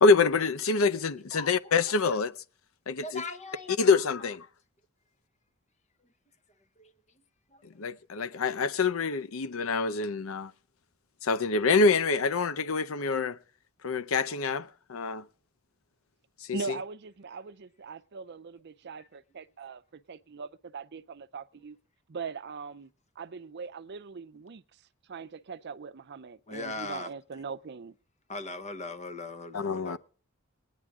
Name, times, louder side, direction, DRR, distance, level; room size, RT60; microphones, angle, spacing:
voice 1, 0.0-2.3 2.9-3.2 3.8-4.4 7.8-10.5 11.2-13.4 13.8-15.2 16.5-16.6 29.5-30.0, left 4 dB, 75° left, 0.6 m, -26 dB
voice 2, 1.1-1.7 3.0-4.0 6.8-6.9 7.5-7.6 26.5-27.1 28.3-30.0, left 2 dB, 35° left, 1.0 m, -39 dB
voice 3, 16.5-21.8 22.1-22.9 23.2-24.6 25.1-27.9, right 5 dB, 55° right, 0.5 m, -41 dB
19.5 x 9.9 x 3.6 m
head